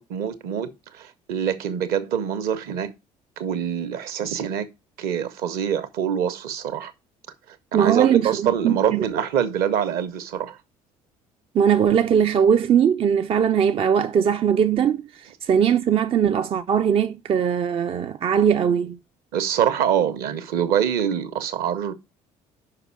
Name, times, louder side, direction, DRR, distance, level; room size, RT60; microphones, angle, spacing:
voice 1, 0.0-2.9 3.4-4.7 5.0-6.9 7.5-10.6 19.3-21.9, right 9 dB, 55° right, 1.0 m, -25 dB
voice 2, 7.7-9.0 11.5-15.0 15.4-19.0, right 8 dB, 30° right, 0.4 m, -20 dB
5.8 x 5.4 x 5.9 m
figure-of-eight pair, 55°, 19 cm